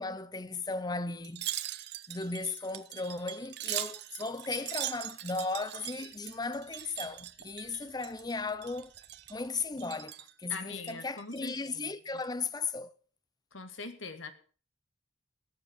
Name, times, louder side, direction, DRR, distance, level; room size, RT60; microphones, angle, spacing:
voice 1, 0.0-1.5 2.1-8.9 9.3-12.9, left 3 dB, 20° left, 0.7 m, -36 dB
Wind chime, 1.2-8.3 8.6-9.4 9.8-10.3 10.8-11.7 12.1-12.3, right 14 dB, 55° right, 0.7 m, -41 dB
sound 1, 2.4-2.8 3.2-3.9 4.2-5.5 5.8-9.9, right 11 dB, 85° right, 1.1 m, -52 dB
voice 2, 10.5-11.9 13.5-14.3, left 3 dB, 85° left, 1.9 m, -42 dB
18.5 x 7.7 x 6.2 m
head